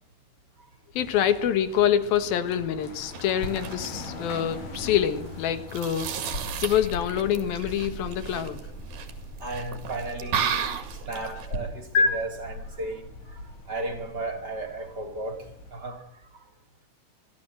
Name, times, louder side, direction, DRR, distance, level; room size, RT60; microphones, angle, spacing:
voice 1, 0.9-6.1 6.6-8.7, left 10 dB, 90° left, 3.3 m, -26 dB
sound 1, 0.9-15.7, left 2 dB, 70° left, 5.9 m, -43 dB
sound 2, 3.0-11.6, right 7 dB, 85° right, 4.0 m, -35 dB
sound 3, 3.4-11.6 12.0-12.1, left 2 dB, 35° left, 8.1 m, -34 dB
voice 2, 9.4-16.4, right 2 dB, 30° right, 2.7 m, -35 dB
24.0 x 14.0 x 7.8 m
omnidirectional pair, 4.1 m